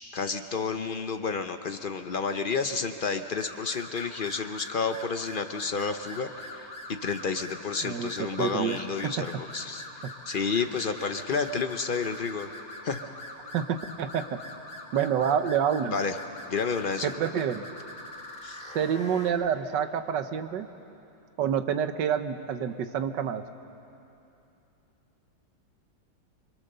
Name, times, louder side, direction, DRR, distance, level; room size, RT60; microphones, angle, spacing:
voice 1, 0.1-9.9 10.3-12.5 12.8-13.1 15.9-16.2 16.5-17.1 18.4-18.6, left 5 dB, 55° left, 8 dB, 0.6 m, -30 dB
sound 1, 3.4-19.3, left 1 dB, 30° left, 2.4 m, -43 dB
voice 2, 7.8-8.8 9.0-9.2 10.0-10.1 13.5-14.2 14.9-16.0 17.0-17.7 18.6-20.7 21.4-23.4, right 8 dB, 75° right, 9 dB, 1.6 m, -28 dB
26.0 x 22.5 x 6.7 m, 2.8 s
omnidirectional pair, 2.0 m